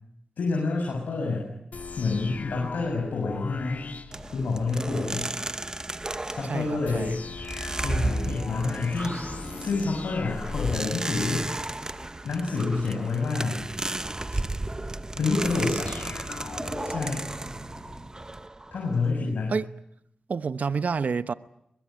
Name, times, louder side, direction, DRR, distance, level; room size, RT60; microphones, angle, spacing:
voice 1, 0.4-1.5 2.0-3.8 4.3-5.3 6.2-7.2 7.8-9.2 9.6-11.5 12.2-13.6 15.2-15.9 16.8-17.2 18.7-19.6, left 3 dB, 80° left, 6.9 m, -28 dB
sound 1, 1.7-5.0 6.8-12.1 15.4-18.1, left 4 dB, 65° left, 2.3 m, -39 dB
sound 2, 4.1-19.1, right 2 dB, 25° right, 1.0 m, -34 dB
voice 2, 6.5-7.2 19.5-19.6 20.3-21.3, right 5 dB, 65° right, 0.9 m, -28 dB
22.5 x 22.0 x 8.9 m
cardioid pair, 55°, 3 cm